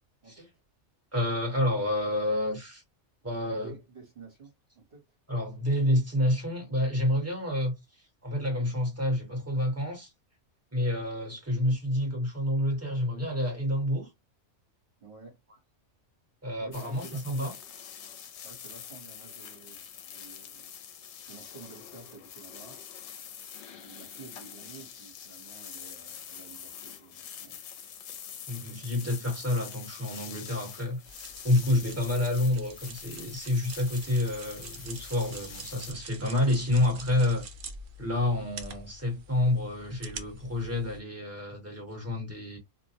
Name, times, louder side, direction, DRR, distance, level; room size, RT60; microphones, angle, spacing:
voice 1, 1.1-2.8 3.2-3.7 5.3-7.7 8.2-10.1 10.7-14.1 16.4-17.5 28.5-31.0 31.4-37.4 38.0-42.6, left 1 dB, 15° right, 1.1 m, -28 dB
voice 2, 3.4-5.0 15.0-15.4 16.6-17.6 18.4-20.7 21.3-22.8 23.7-27.6, right 4 dB, 50° right, 1.3 m, -50 dB
sound 1, 16.7-35.9, left 8 dB, 75° left, 0.9 m, -45 dB
sound 2, 31.1-41.0, right 3 dB, 90° right, 1.0 m, -46 dB
2.5 x 2.1 x 2.7 m
omnidirectional pair, 1.2 m